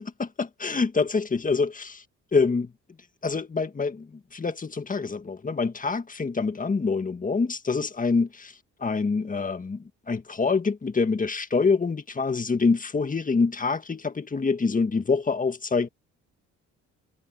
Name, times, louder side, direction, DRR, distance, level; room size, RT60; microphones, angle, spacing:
voice 1, 0.0-2.0 2.3-2.7 3.2-8.5 8.8-15.9, left 4 dB, 25° left, 1.7 m, -26 dB
cardioid pair, 90°, 30 cm